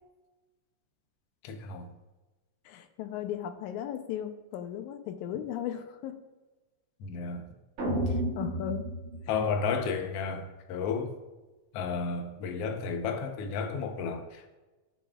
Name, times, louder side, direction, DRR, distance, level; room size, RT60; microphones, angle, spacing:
voice 1, 1.4-1.9 7.0-7.4 9.3-11.1 11.7-14.6, left 5 dB, 70° left, 5 dB, 1.6 m, -32 dB
voice 2, 2.7-6.2 8.1-8.9, left 10 dB, 90° left, 8 dB, 2.1 m, -36 dB
sound 1, 7.8-10.1, right 1 dB, 80° right, 3.4 m, -32 dB
16.5 x 6.3 x 2.4 m, 1.1 s
omnidirectional pair, 3.4 m